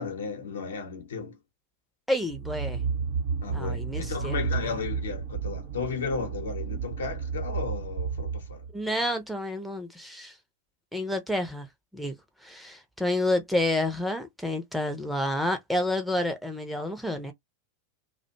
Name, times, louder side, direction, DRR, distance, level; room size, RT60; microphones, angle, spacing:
voice 1, 0.0-1.4 3.4-8.6, left 5 dB, 65° left, 0.9 m, -34 dB
voice 2, 2.1-2.8 3.5-4.7 8.7-10.3 10.9-11.7 11.9-12.2 12.4-17.3, left 1 dB, ahead, 0.6 m, -29 dB
sound 1, 2.3-8.8, right 6 dB, 55° right, 0.7 m, -32 dB
2.4 x 2.1 x 2.8 m
figure-of-eight pair, 90°, 0 cm